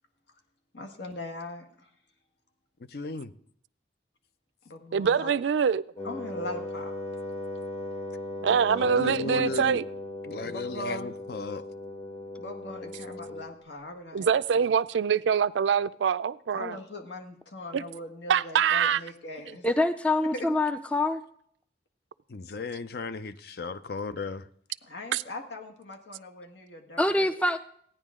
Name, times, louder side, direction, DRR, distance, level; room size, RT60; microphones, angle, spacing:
voice 1, 0.7-1.9 4.7-5.3 6.0-6.9 8.4-8.9 10.4-11.1 12.4-14.3 14.6-14.7 16.5-19.7 20.3-20.5 24.8-27.3, left 2 dB, 75° left, 1.6 m, -40 dB
voice 2, 2.9-3.3 8.8-9.8 10.2-11.6 22.3-24.4, left 3 dB, 55° left, 0.5 m, -35 dB
voice 3, 4.9-5.8 8.4-9.8 14.1-16.8 17.7-17.8 18.3-19.0 25.1-25.2, right 7 dB, 80° right, 0.4 m, -24 dB
Wind instrument woodwind instrument, 6.0-13.6, left 2 dB, 35° left, 1.8 m, -38 dB
voice 4, 19.6-21.2 27.0-27.6, left 2 dB, 5° left, 0.4 m, -25 dB
16.0 x 10.0 x 3.7 m
head